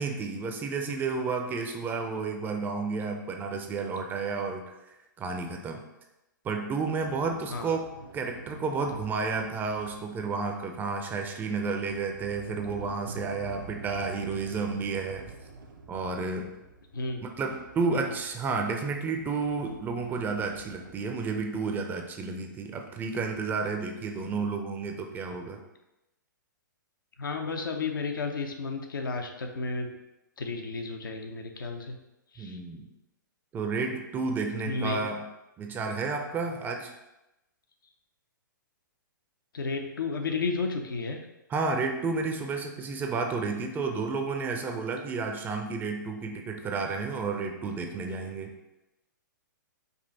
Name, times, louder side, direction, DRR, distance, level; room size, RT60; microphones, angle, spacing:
voice 1, 0.0-4.6 5.2-5.8 6.4-15.2 15.9-16.5 17.2-25.6 32.4-32.9 33.5-35.2 35.6-36.9 41.5-48.5, right 4 dB, 15° right, 3 dB, 0.5 m, -31 dB
Sliding door, 7.0-10.8 11.4-21.0, right 3 dB, 80° right, 0.7 m, -48 dB
voice 2, 27.2-29.9 30.4-31.9 32.3-32.6 34.6-35.1 39.5-41.2, left 4 dB, 80° left, 4 dB, 0.7 m, -32 dB
5.3 x 2.5 x 4.0 m, 0.94 s
hypercardioid pair, 120°, 11 cm